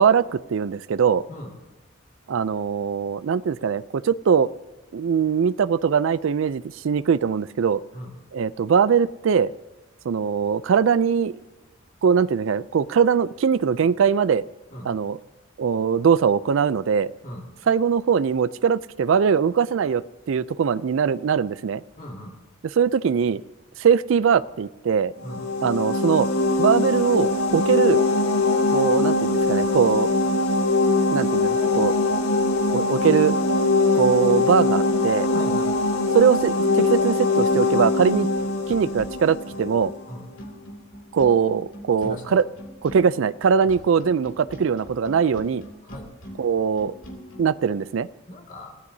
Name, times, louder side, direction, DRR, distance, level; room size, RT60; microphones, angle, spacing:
voice 1, 0.0-1.2 2.3-4.5 4.9-7.8 8.3-9.5 10.1-11.4 12.0-14.4 14.8-15.2 15.6-17.1 17.7-20.0 20.3-21.8 22.6-23.4 23.8-25.1 25.6-26.3 26.6-28.0 28.7-30.1 31.1-32.0 32.7-33.4 33.9-35.3 36.1-38.3 38.7-39.9 41.1-42.4 42.8-45.6 46.4-46.9 47.4-48.1, right 6 dB, 70° right, 17 dB, 0.4 m, -21 dB
voice 2, 22.0-22.3 25.2-25.4 35.2-35.8 40.1-40.3 42.0-42.4 43.6-43.8 45.8-46.1 48.3-48.7, left 1 dB, 35° left, 0 dB, 2.0 m, -38 dB
sound 1, 25.2-39.9, left 2 dB, 90° left, 1.5 m, -22 dB
sound 2, 38.1-47.5, equal, 65° left, 2.7 m, -42 dB
27.5 x 15.0 x 2.7 m, 1.1 s
head